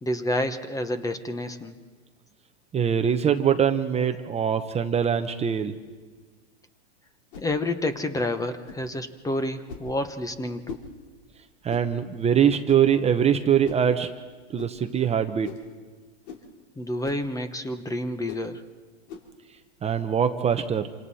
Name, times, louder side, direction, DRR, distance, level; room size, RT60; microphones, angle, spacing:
voice 1, 0.0-1.7 7.4-10.8 16.8-18.6, left 1 dB, 10° left, 10 dB, 1.1 m, -29 dB
voice 2, 2.7-5.7 11.6-14.1 14.5-15.5 19.8-20.9, right 8 dB, 20° right, 7 dB, 0.9 m, -23 dB
sound 1, 7.3-7.5 8.7-8.9 9.7-9.9 10.7-10.9 11.7-11.9 12.7-12.9 13.6-13.9 14.6-14.7 15.4-15.7 16.2-16.5 17.0-17.3 18.3-18.5 19.1-19.3, left 6 dB, 65° left, 4.2 m, -40 dB
27.5 x 26.0 x 4.2 m, 1.4 s
hypercardioid pair, 125°, 35 cm